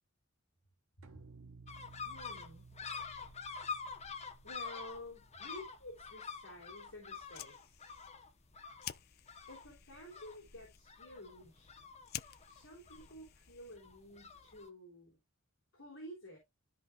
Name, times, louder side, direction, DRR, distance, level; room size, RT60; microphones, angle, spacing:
sound 1, 1.0-6.3, right 4 dB, 85° right, 1.0 m, -58 dB
sound 2, 1.7-14.7, left 5 dB, 30° left, 1.0 m, -47 dB
voice 1, 2.0-2.7 4.4-7.8 9.5-11.7 12.5-15.2 15.7-16.4, left 1 dB, 70° left, 3.4 m, -51 dB
Fire, 7.1-14.0, left 12 dB, 50° left, 0.4 m, -52 dB
13.0 x 4.6 x 2.4 m
head